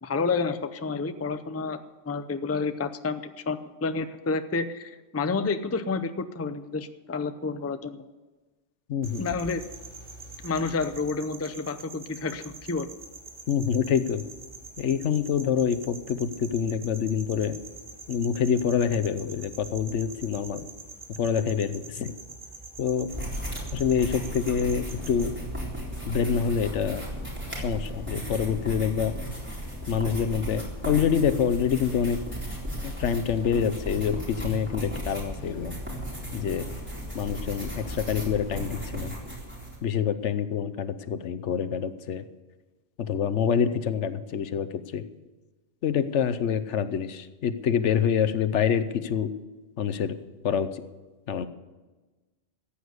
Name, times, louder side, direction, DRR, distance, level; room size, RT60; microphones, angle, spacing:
voice 1, 0.0-1.8 2.1-8.1 9.2-9.6 10.4-12.9, left 4 dB, 20° left, 10 dB, 0.5 m, -29 dB
voice 2, 8.9-9.3 13.5-14.2 14.8-17.5 18.1-20.6 21.2-22.1 22.8-23.1 23.7-25.3 26.1-27.0 27.6-29.1 29.9-32.2 32.8-35.7 36.3-36.7 37.1-39.1 39.8-42.2 43.0-44.7 44.9-45.0 45.8-49.3 49.8-50.2 50.4-50.7 51.3-51.5, left 7 dB, 80° left, 13 dB, 1.1 m, -26 dB
sound 1, 9.0-25.4, right 3 dB, 85° right, 2.5 m, -45 dB
sound 2, 23.1-39.8, equal, 10° right, 3.9 m, -35 dB
14.5 x 8.6 x 8.0 m, 1.2 s
omnidirectional pair, 1.2 m